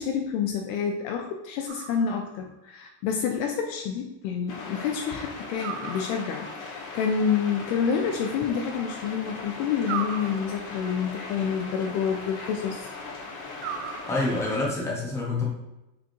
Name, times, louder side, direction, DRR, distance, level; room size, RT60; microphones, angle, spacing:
voice 1, 0.0-12.9, left 7 dB, 50° left, 3 dB, 0.5 m, -28 dB
sound 1, 1.7-2.5 5.6-6.6 9.8-10.9 13.6-14.6, right 8 dB, 70° right, 0.6 m, -37 dB
sound 2, 4.5-14.7, left 3 dB, 75° left, 1.7 m, -39 dB
voice 2, 14.1-15.4, left 2 dB, 5° left, -4 dB, 0.7 m, -27 dB
5.0 x 3.6 x 3.0 m, 0.94 s
cardioid pair, 180°, 42 cm